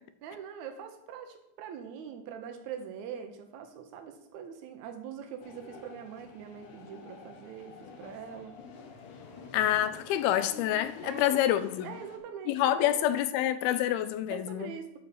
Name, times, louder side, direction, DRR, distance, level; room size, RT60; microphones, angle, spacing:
voice 1, 0.2-8.5 11.0-11.4 11.8-13.0 14.3-15.0, right 7 dB, 85° right, 1.6 m, -43 dB
sound 1, 5.4-12.2, left 5 dB, 65° left, 2.4 m, -48 dB
voice 2, 9.5-11.9 12.5-14.7, left 12 dB, 85° left, 2.5 m, -27 dB
10.0 x 4.2 x 6.8 m
omnidirectional pair, 4.4 m